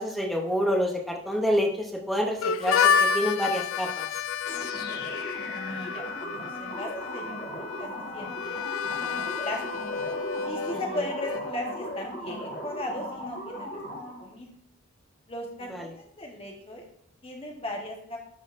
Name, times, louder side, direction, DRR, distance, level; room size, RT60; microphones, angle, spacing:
voice 1, 0.0-4.1 15.7-15.9, equal, ahead, 0 dB, 0.6 m, -27 dB
Harmonica, 2.4-12.0, left 6 dB, 65° left, 0.3 m, -30 dB
sound 1, 4.5-14.3, equal, 45° left, 1.9 m, -38 dB
voice 2, 5.5-8.6 9.0-9.6 10.4-13.7 14.2-14.5 15.3-16.8 17.2-18.2, left 1 dB, 25° left, 1 dB, 1.1 m, -37 dB
11.5 x 3.8 x 2.5 m, 0.68 s
head